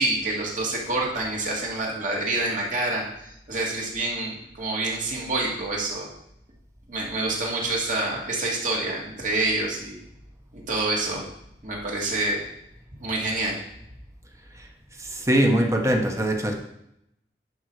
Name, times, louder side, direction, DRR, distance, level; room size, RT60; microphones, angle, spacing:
voice 1, 0.0-6.1 6.9-10.0 10.7-11.2 11.6-12.4 13.0-13.6, right 2 dB, 45° right, -2 dB, 2.5 m, -27 dB
voice 2, 15.0-16.5, right 1 dB, 15° right, 3 dB, 1.1 m, -22 dB
11.0 x 5.5 x 4.9 m, 0.79 s
head